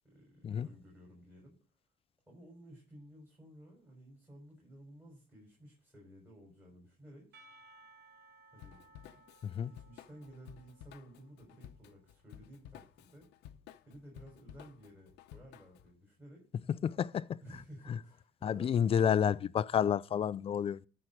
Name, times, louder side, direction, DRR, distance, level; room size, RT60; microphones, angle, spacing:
voice 1, 0.0-1.6 2.3-7.3 8.5-9.3 9.6-13.3 13.8-16.4 17.4-19.1, equal, 10° right, 6.4 m, -55 dB
Percussion / Church bell, 7.3-11.9, right 2 dB, 80° right, 2.4 m, -62 dB
Drum kit / Drum, 8.6-15.9, left 10 dB, 85° left, 0.9 m, -55 dB
voice 2, 16.8-17.4 17.9-18.0 18.4-20.9, left 8 dB, 35° left, 0.4 m, -30 dB
13.5 x 4.6 x 6.3 m
cardioid pair, 110°, 17 cm